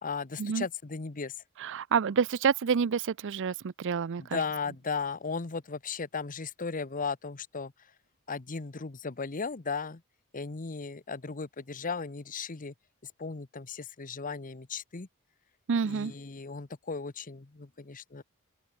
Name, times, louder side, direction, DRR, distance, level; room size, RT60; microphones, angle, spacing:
voice 1, 0.0-1.3 4.2-7.7 8.3-10.0 10.3-12.7 13.2-15.1 15.9-18.2, left 4 dB, 40° left, 0.9 m, -36 dB
voice 2, 1.6-4.4 15.7-16.1, right 6 dB, 55° right, 0.5 m, -28 dB
open air
head